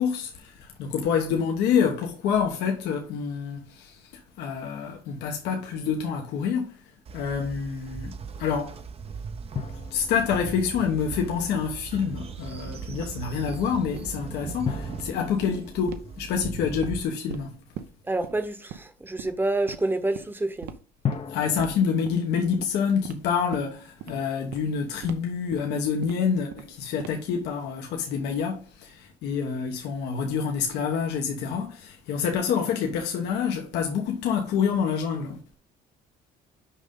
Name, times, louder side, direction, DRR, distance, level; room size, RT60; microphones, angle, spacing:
voice 1, 0.0-6.8 7.1-8.1 8.4-8.8 9.9-17.6 21.3-35.6, left 7 dB, 85° left, 1.2 m, -27 dB
Train, 7.1-17.1, right 5 dB, 35° right, 0.6 m, -39 dB
sound 1, 9.6-11.8 14.7-17.6 21.0-22.9, left 7 dB, 35° left, 0.6 m, -37 dB
sound 2, 13.0-13.1 13.5-13.6 14.0-14.1 14.4-14.5 14.8-15.0 15.4-15.5 15.9-16.0 16.4-17.0 17.3-17.4 17.8-17.9 18.2-18.3 18.7-18.9 19.2-19.3 19.7-19.8 20.1-20.3 20.6-20.7 21.1-21.2 21.6-21.7 22.1-22.2 22.5-22.7 23.0-23.2 23.5-23.7 24.0-24.1 24.5-24.6 25.0-25.1 25.5-25.6 26.0-26.1 26.5-26.7 27.0-27.3, right 9 dB, 75° right, 0.8 m, -38 dB
voice 2, 18.1-20.7, right 2 dB, 10° right, 0.9 m, -28 dB
6.2 x 5.2 x 3.7 m
cardioid pair, 110°, 17 cm